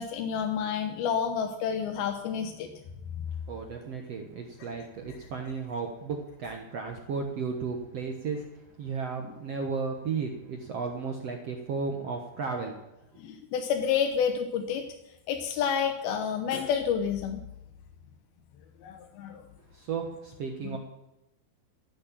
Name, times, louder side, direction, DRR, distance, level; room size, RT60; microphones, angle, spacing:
voice 1, 0.0-2.7 13.2-14.8 15.3-17.4 18.8-19.4, left 7 dB, 75° left, 4 dB, 2.7 m, -29 dB
voice 2, 3.5-8.4 8.8-12.8 19.7-20.8, right 5 dB, 70° right, 3 dB, 1.5 m, -34 dB
15.0 x 8.8 x 7.4 m, 0.92 s
omnidirectional pair, 4.8 m